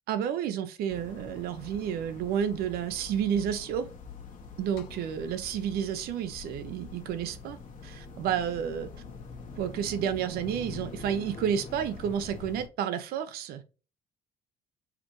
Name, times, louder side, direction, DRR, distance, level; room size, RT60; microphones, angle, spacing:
voice 1, 0.1-3.9 4.6-7.6 7.8-8.9 9.5-13.6, right 9 dB, 70° right, 0.8 m, -31 dB
sound 1, 0.9-12.7, left 4 dB, 50° left, 1.2 m, -45 dB
sound 2, 4.8-9.2, left 9 dB, 70° left, 0.6 m, -55 dB
5.8 x 2.5 x 3.0 m
supercardioid pair, 65°, 17 cm